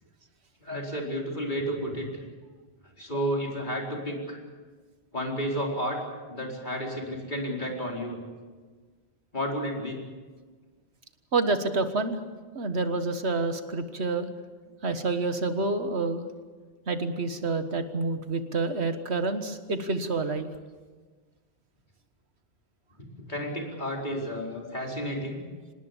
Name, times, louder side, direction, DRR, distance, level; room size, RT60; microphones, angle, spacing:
voice 1, 0.6-2.1 3.0-4.4 5.1-6.0 6.3-8.2 9.3-10.0 23.3-25.4, equal, 45° left, -1 dB, 4.7 m, -31 dB
voice 2, 11.3-12.2 12.6-14.3 14.8-16.2 16.9-20.5, right 3 dB, 80° right, 9 dB, 1.8 m, -28 dB
26.0 x 19.5 x 7.2 m, 1.4 s
omnidirectional pair, 1.1 m